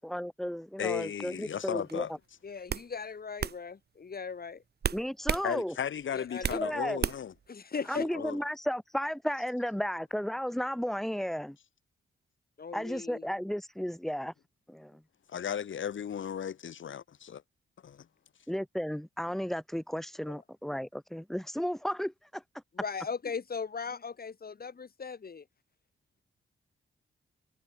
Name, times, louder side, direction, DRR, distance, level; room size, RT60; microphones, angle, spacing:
voice 1, 0.0-2.1 4.9-5.7 6.5-7.0 7.9-11.6 12.7-14.3 14.7-15.0 18.5-22.4, equal, ahead, 0.6 m, -34 dB
voice 2, 0.8-2.1 5.4-7.3 8.0-8.4 15.3-17.4 17.8-18.1, left 8 dB, 65° left, 1.6 m, -35 dB
sound 1, 1.9-2.1 2.7-2.9 3.4-3.6 4.8-5.5 5.8-6.6 7.0-7.4, right 7 dB, 50° right, 1.0 m, -32 dB
voice 3, 2.4-4.6 6.1-6.7 7.5-8.2 12.6-13.2 20.3-20.4 22.7-25.5, left 5 dB, 45° left, 6.7 m, -38 dB
wide cardioid pair, 120°, 21 cm